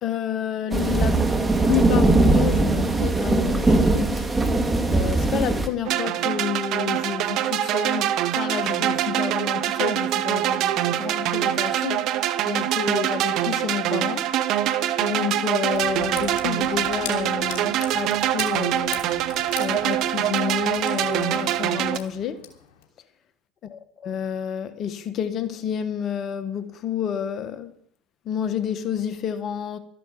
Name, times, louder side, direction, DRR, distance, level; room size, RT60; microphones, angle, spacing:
voice 1, 0.0-1.3 1.6-4.3 4.9-14.7 15.0-19.0 19.6-22.5 23.7-27.7 28.2-29.8, left 8 dB, 50° left, 1.2 m, -30 dB
sound 1, 0.7-5.7, right 2 dB, 15° right, 2.3 m, -20 dB
sound 2, 5.8-22.0, right 12 dB, 60° right, 1.0 m, -24 dB
sound 3, 15.7-22.9, left 9 dB, 65° left, 3.1 m, -41 dB
13.0 x 11.0 x 7.2 m
hypercardioid pair, 75°, 0 cm